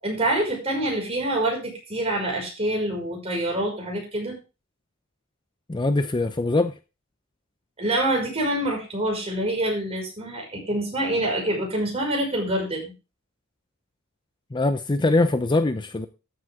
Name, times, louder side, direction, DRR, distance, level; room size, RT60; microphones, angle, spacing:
voice 1, 0.0-4.4 7.8-12.9, right 1 dB, 30° right, 0 dB, 5.7 m, -26 dB
voice 2, 5.7-6.7 14.5-16.1, left 2 dB, 20° left, 10 dB, 0.5 m, -22 dB
13.5 x 8.0 x 3.6 m, 0.30 s
head